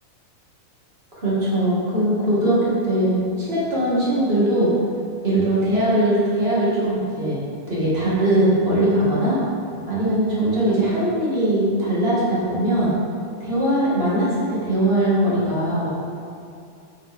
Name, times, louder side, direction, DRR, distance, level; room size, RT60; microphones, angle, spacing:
voice 1, 1.2-4.7 5.2-7.4 7.7-9.4 9.9-12.9 13.4-15.9, right 1 dB, 30° right, -9 dB, 1.1 m, -20 dB
7.6 x 7.5 x 3.5 m, 2.5 s
omnidirectional pair, 4.2 m